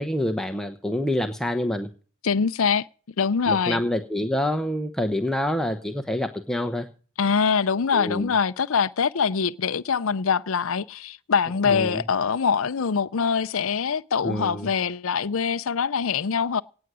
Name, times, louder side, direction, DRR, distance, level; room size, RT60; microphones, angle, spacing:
voice 1, 0.0-1.9 3.5-6.9 7.9-8.3 11.6-12.0 14.2-14.7, left 1 dB, ahead, 0.8 m, -27 dB
voice 2, 2.2-2.9 3.2-3.8 7.2-16.6, left 6 dB, 65° left, 0.5 m, -24 dB
18.0 x 8.0 x 6.1 m
head